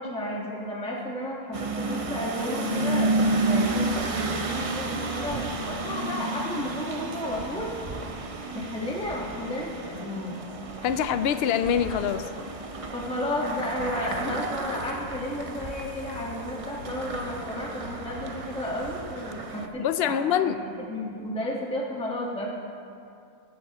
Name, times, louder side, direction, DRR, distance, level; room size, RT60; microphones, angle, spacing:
voice 1, 0.0-7.7 8.5-10.4 12.9-22.5, left 1 dB, 5° left, -3 dB, 1.4 m, -33 dB
sound 1, 1.5-19.7, right 2 dB, 35° right, 0.5 m, -31 dB
voice 2, 10.8-12.3 14.2-14.4 19.8-20.6, left 9 dB, 65° left, 11 dB, 0.6 m, -25 dB
sound 2, 13.1-19.0, left 2 dB, 40° left, 3.4 m, -45 dB
20.5 x 10.0 x 3.0 m, 2.5 s
omnidirectional pair, 1.5 m